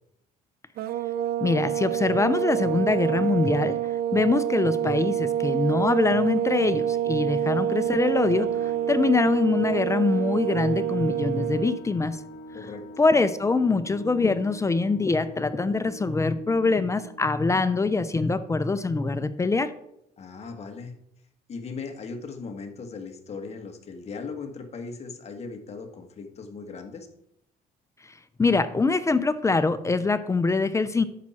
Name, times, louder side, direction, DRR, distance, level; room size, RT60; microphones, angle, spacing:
sound 1, 0.8-11.8, right 11 dB, 70° right, 0.5 m, -27 dB
voice 1, 1.4-3.8 4.1-12.2 13.0-19.7 28.4-31.0, left 3 dB, 15° left, 13 dB, 0.6 m, -24 dB
sound 2, 7.2-18.5, equal, 80° left, 1.8 m, -44 dB
voice 2, 12.5-12.9 20.2-21.0 21.5-27.1, left 4 dB, 40° left, 5 dB, 1.7 m, -38 dB
11.0 x 7.2 x 4.3 m, 0.77 s
cardioid pair, 110°, 17 cm